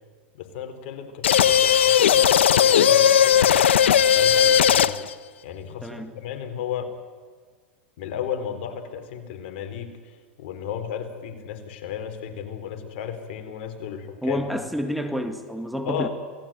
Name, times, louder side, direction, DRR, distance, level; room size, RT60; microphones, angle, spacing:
voice 1, 0.3-3.7 4.1-4.9 5.4-6.9 8.0-14.4 15.8-16.1, left 8 dB, 65° left, 4.2 m, -33 dB
sound 1, 1.2-5.1, left 9 dB, 85° left, 0.9 m, -17 dB
voice 2, 14.2-16.1, equal, ahead, 2.0 m, -29 dB
28.0 x 19.0 x 9.2 m
hypercardioid pair, 115°, 6 cm